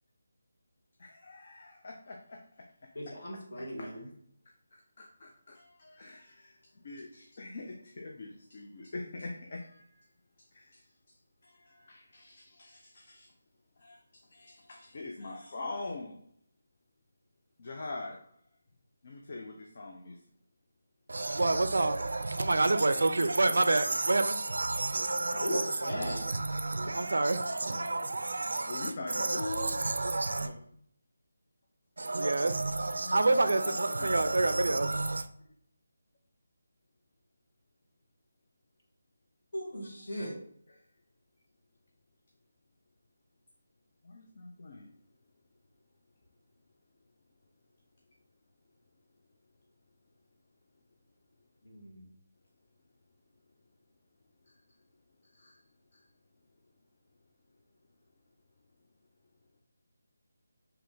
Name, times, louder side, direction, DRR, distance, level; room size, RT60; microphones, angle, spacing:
voice 1, 1.0-2.9 3.6-4.0 4.7-10.1 10.4-11.2 11.4-13.3 13.8-16.3 17.6-18.3 19.0-20.2 25.3-25.7 27.8-27.9 28.7-29.9 30.4-30.6 33.0-34.3 40.7-40.8 44.0-44.9 54.4-54.6 55.2-55.6 55.9-56.1, left 3 dB, 30° left, 0.4 m, -44 dB
voice 2, 2.9-4.1 25.4-26.3 39.5-40.4 51.6-52.1, equal, 55° left, 1.4 m, -37 dB
voice 3, 21.1-30.5 32.0-35.3, right 2 dB, 70° right, 0.4 m, -29 dB
3.3 x 2.8 x 3.8 m
figure-of-eight pair, 180°, 0 cm